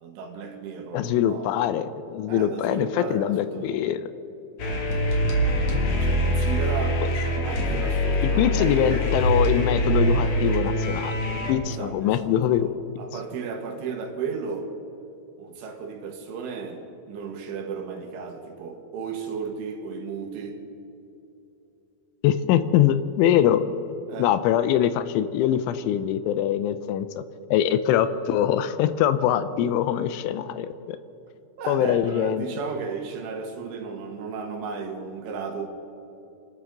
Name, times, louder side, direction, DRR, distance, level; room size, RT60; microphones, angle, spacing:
voice 1, 0.0-1.5 2.3-3.8 6.0-7.0 7.4-9.1 11.7-14.7 15.4-16.8 17.1-20.6 24.1-24.3 31.6-35.7, right 5 dB, 85° right, 3 dB, 4.1 m, -34 dB
voice 2, 0.9-4.1 8.4-11.2 11.5-12.7 22.2-23.6 24.2-27.2 27.5-31.0 31.7-32.5, left 10 dB, 85° left, 12 dB, 3.1 m, -23 dB
sound 1, 4.6-11.5, equal, 55° left, 2.0 m, -24 dB
27.0 x 12.5 x 3.9 m, 2.9 s
omnidirectional pair, 5.5 m